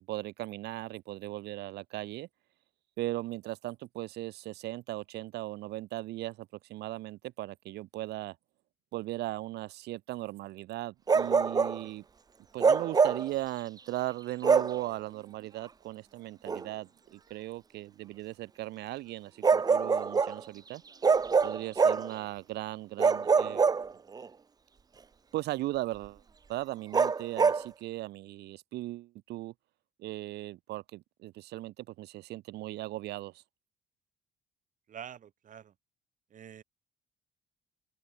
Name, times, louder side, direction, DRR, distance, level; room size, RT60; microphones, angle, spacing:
voice 1, 0.1-2.3 3.0-8.4 8.9-12.0 12.5-20.8 21.4-23.8 25.3-26.2 26.5-29.5 30.0-33.4, right 17 dB, 80° right, 1.5 m, -38 dB
Bark, 11.1-11.8 12.6-13.3 14.4-14.8 16.5-16.6 19.4-20.4 21.0-22.1 23.0-24.3 26.9-27.7, right 5 dB, 20° right, 0.6 m, -25 dB
voice 2, 34.9-35.7 36.3-36.6, right 9 dB, 50° right, 4.7 m, -46 dB
cardioid pair, 110°, 17 cm